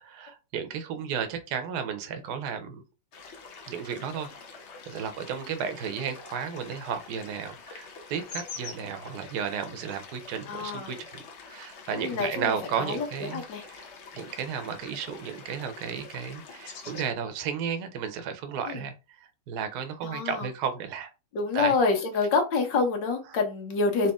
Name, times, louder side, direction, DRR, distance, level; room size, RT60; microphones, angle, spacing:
voice 1, 0.0-2.8 3.7-4.3 4.9-11.2 11.5-13.4 13.7-13.9 14.1-18.9 19.5-21.1 21.5-21.7, right 7 dB, 70° right, 1.2 m, -33 dB
sound 1, 3.1-17.1, left 4 dB, 50° left, 0.8 m, -45 dB
voice 2, 10.5-10.9 11.9-13.6 18.7-18.9 20.0-20.5 21.3-24.1, left 4 dB, 80° left, 1.7 m, -27 dB
4.1 x 3.0 x 3.5 m
omnidirectional pair, 1.9 m